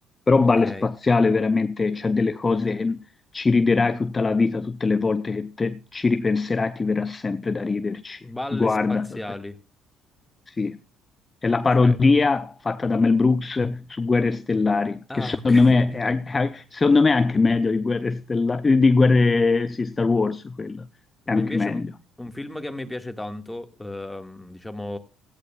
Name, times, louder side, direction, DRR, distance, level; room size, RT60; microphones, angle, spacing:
voice 1, 0.3-3.0 3.3-8.2 8.5-9.2 10.5-10.8 11.4-20.9 21.3-21.9, left 3 dB, 30° left, 0.6 m, -21 dB
voice 2, 8.2-9.6 11.5-12.0 15.1-15.9 21.3-21.9 22.2-25.0, left 1 dB, 10° left, 2.0 m, -34 dB
17.0 x 14.0 x 2.5 m
hypercardioid pair, 50°, 0 cm